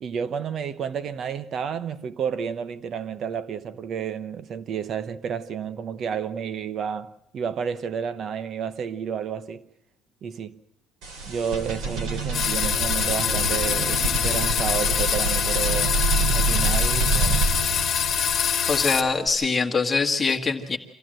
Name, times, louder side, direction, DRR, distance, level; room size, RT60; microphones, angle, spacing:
voice 1, 0.0-9.7 10.2-10.6 11.2-16.0 16.3-17.4, right 7 dB, 45° right, 1.0 m, -31 dB
sound 1, 11.0-19.3, right 3 dB, 75° right, 4.7 m, -27 dB
sound 2, 12.3-19.0, left 8 dB, 40° left, 1.9 m, -24 dB
voice 2, 18.7-20.8, left 4 dB, 20° left, 1.8 m, -23 dB
26.5 x 15.5 x 7.8 m
cardioid pair, 155°, 0 cm